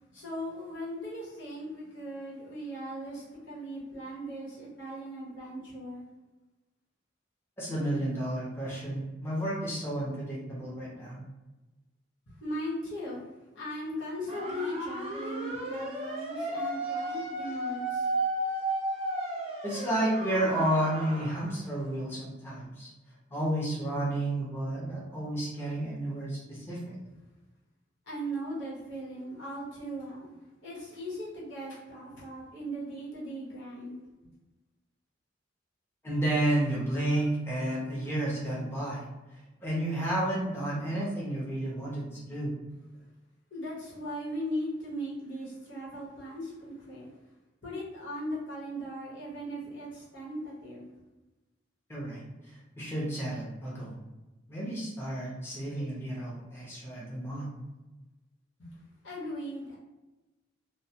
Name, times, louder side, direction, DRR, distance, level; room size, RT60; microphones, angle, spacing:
voice 1, 0.1-6.1 12.3-13.2 13.5-18.1 28.1-34.0 43.5-47.1 47.6-50.9 58.6-58.8 59.0-59.8, equal, 80° left, -6 dB, 1.0 m, -38 dB
voice 2, 7.6-11.2 19.6-22.9 23.3-26.9 36.0-39.0 39.6-42.5 51.9-52.2 52.8-53.9 54.5-57.5, right 1 dB, 15° left, -6 dB, 0.6 m, -31 dB
sound 1, 14.3-21.5, right 1 dB, 35° right, 0.5 m, -34 dB
2.2 x 2.2 x 2.7 m, 1.1 s
head